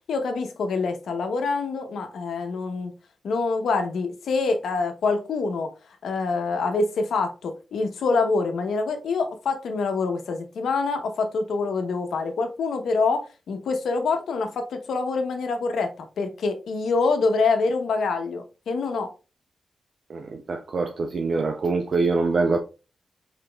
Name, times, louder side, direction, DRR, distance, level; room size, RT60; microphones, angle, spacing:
voice 1, 0.1-2.9 3.2-5.7 6.0-19.1, left 4 dB, 85° left, 0.8 m, -25 dB
voice 2, 20.1-22.6, right 3 dB, 55° right, 0.5 m, -24 dB
5.1 x 4.0 x 2.3 m
wide cardioid pair, 115°, 0 cm